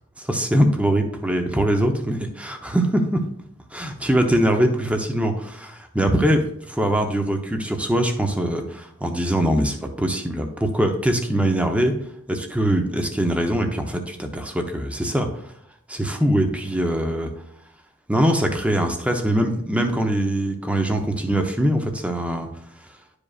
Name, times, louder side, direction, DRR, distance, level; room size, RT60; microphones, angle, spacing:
voice 1, 0.2-3.2 3.7-11.9 12.3-15.4 15.9-17.3 18.1-22.5, right 1 dB, 5° right, 4 dB, 0.8 m, -22 dB
11.0 x 5.0 x 2.5 m, 0.73 s
head